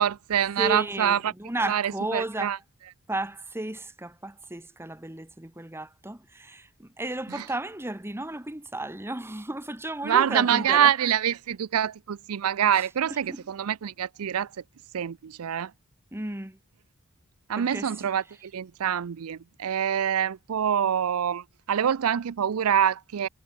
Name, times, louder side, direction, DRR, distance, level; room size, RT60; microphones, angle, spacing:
voice 1, 0.0-1.3 1.7-2.6 7.3-7.4 10.0-14.5 14.9-15.7 17.5-23.3, right 9 dB, 80° right, 0.5 m, -25 dB
voice 2, 0.6-2.6 3.1-10.9 12.7-13.5 16.1-16.6 17.5-18.1, right 1 dB, 10° right, 1.5 m, -34 dB
head